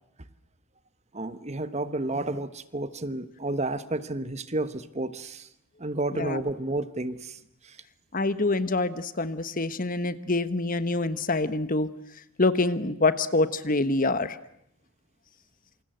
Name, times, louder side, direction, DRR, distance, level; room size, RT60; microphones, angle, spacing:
voice 1, 1.1-5.5 5.8-7.4 7.6-7.8, right 2 dB, 30° right, 12 dB, 1.2 m, -31 dB
voice 2, 6.1-6.4 8.1-11.9 12.4-14.4, left 2 dB, 40° left, 13 dB, 1.3 m, -26 dB
27.5 x 27.0 x 7.9 m, 0.73 s
head